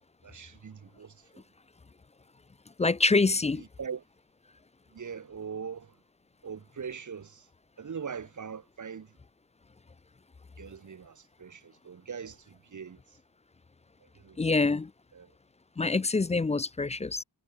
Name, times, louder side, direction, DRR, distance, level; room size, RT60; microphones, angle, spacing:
voice 1, 0.2-1.4 3.4-4.0 4.9-5.9 6.4-7.5 7.8-9.1 10.6-13.0 14.2-14.6 15.1-15.3, right 6 dB, 45° right, 2.7 m, -41 dB
voice 2, 2.8-3.6 14.4-14.9 15.8-17.2, left 3 dB, 15° left, 0.4 m, -25 dB
wide cardioid pair, 155°, 41 cm